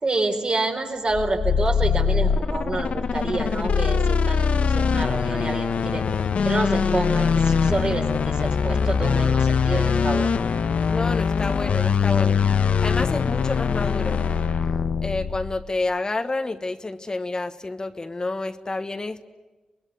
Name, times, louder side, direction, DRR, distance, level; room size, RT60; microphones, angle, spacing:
voice 1, 0.0-6.0 6.4-10.4, right 2 dB, 50° right, 3 dB, 4.0 m, -28 dB
sound 1, 1.1-15.7, left 6 dB, 80° left, 0.9 m, -22 dB
voice 2, 10.9-12.4 12.8-14.2 15.0-19.3, left 2 dB, 35° left, 8 dB, 1.2 m, -29 dB
25.0 x 21.0 x 9.5 m, 1.2 s
cardioid pair, 75°, 2 cm